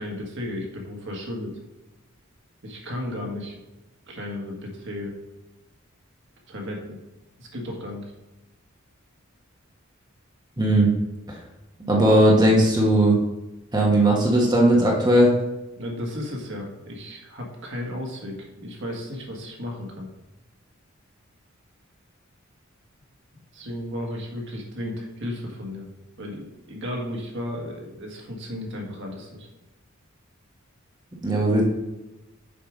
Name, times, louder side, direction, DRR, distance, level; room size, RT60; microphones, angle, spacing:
voice 1, 0.0-1.6 2.6-3.6 4.1-5.1 6.5-7.0 7.4-8.1 15.8-20.1 23.5-25.9 26.2-29.5, left 1 dB, 60° right, 0 dB, 1.6 m, -34 dB
voice 2, 10.6-10.9 11.9-13.2 13.7-15.3 31.2-31.6, right 1 dB, 20° right, -2 dB, 1.2 m, -18 dB
7.1 x 4.7 x 5.0 m, 1.0 s
head